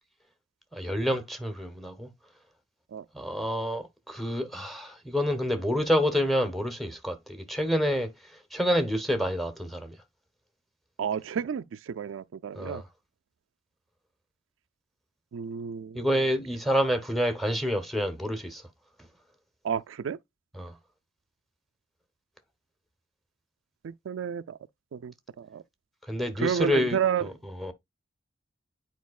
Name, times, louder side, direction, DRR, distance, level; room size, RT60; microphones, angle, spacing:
voice 1, 0.7-2.1 3.1-8.1 8.5-10.0 12.6-12.8 15.9-18.6 20.5-20.7 26.1-27.3 27.6-27.7, equal, ahead, 0.9 m, -28 dB
voice 2, 11.0-12.8 15.3-16.1 19.6-20.2 23.8-24.6 24.9-25.6 26.4-27.3, right 7 dB, 75° right, 0.4 m, -31 dB
9.3 x 4.4 x 2.3 m
head